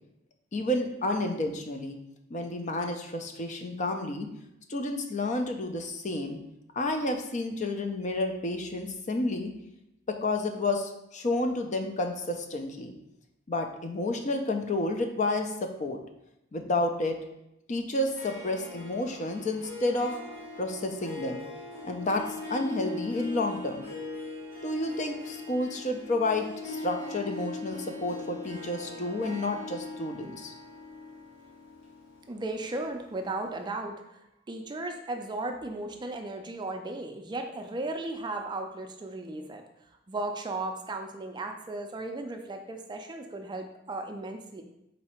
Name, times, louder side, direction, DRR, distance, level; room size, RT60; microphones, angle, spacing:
voice 1, 0.5-2.0 2.3-4.3 4.7-6.4 6.7-9.5 10.1-12.9 13.5-16.0 16.5-17.2 17.7-20.2 20.6-21.4 21.8-23.9 24.6-30.5, left 2 dB, 40° left, 4 dB, 0.5 m, -30 dB
Harp, 18.0-33.3, left 3 dB, 75° left, 1.3 m, -41 dB
voice 2, 32.3-33.9 34.5-39.6 40.1-44.6, right 2 dB, 25° right, 4 dB, 0.4 m, -35 dB
4.1 x 2.7 x 4.3 m, 0.85 s
head